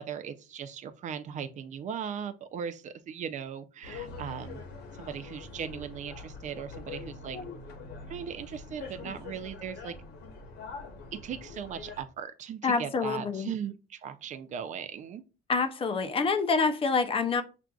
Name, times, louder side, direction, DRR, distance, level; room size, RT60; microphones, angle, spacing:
voice 1, 0.0-4.6 5.0-7.4 8.1-10.0 11.1-15.2, right 8 dB, 45° right, 0.4 m, -38 dB
sound 1, 3.8-12.0, left 4 dB, 75° left, 0.9 m, -44 dB
voice 2, 12.6-13.5 15.5-17.4, left 4 dB, 35° left, 0.5 m, -27 dB
5.9 x 2.5 x 2.3 m
cardioid pair, 110°, 17 cm